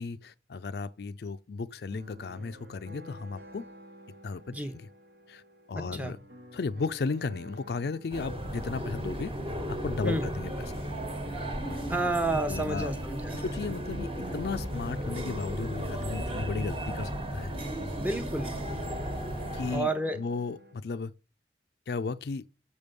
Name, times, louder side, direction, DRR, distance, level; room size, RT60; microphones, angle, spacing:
voice 1, 0.0-3.7 4.2-4.9 5.3-5.4 5.7-6.2 6.5-9.3 9.7-10.8 11.7-11.8 12.5-12.9 13.3-17.5 19.5-21.1 21.9-22.5, left 4 dB, 60° left, 0.4 m, -35 dB
sound 1, 1.9-20.7, equal, 60° right, 1.2 m, -51 dB
voice 2, 5.7-6.1 10.0-10.3 11.9-13.4 18.0-18.5 19.7-20.2, right 2 dB, 10° right, 0.8 m, -30 dB
sound 2, 8.1-19.8, equal, 30° right, 1.4 m, -35 dB
6.7 x 5.2 x 6.7 m
head